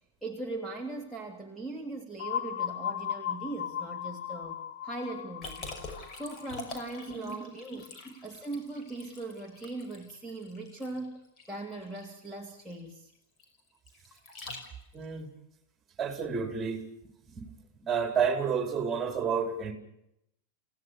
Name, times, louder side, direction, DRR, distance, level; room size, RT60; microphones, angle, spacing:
voice 1, 0.2-5.7 6.1-8.0 8.2-11.2 11.5-13.1, right 2 dB, ahead, 2.9 m, -39 dB
sound 1, 2.2-7.9, left 9 dB, 55° left, 1.5 m, -37 dB
Liquid, 5.4-15.1, left 3 dB, 30° left, 5.6 m, -46 dB
voice 2, 14.9-15.3 16.0-16.8 17.3-17.5 17.8-19.7, right 6 dB, 20° right, 4.6 m, -30 dB
29.0 x 16.5 x 7.0 m
figure-of-eight pair, 90°, 0 cm